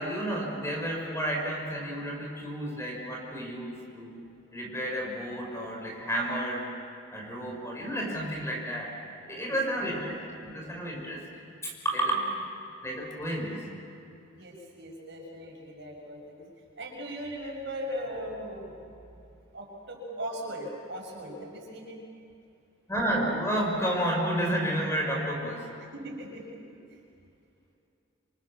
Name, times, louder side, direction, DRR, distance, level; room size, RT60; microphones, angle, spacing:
voice 1, 0.0-4.2 4.5-6.7 7.1-8.9 9.3-12.3 12.8-13.7 22.9-25.7, right 1 dB, 15° left, 0 dB, 5.2 m, -31 dB
voice 2, 9.3-9.8 10.2-10.3 12.1-12.3 14.3-16.5 16.8-18.7 19.1-22.0 25.9-27.0, equal, 60° right, -1 dB, 6.5 m, -39 dB
27.0 x 27.0 x 7.2 m, 2.6 s
head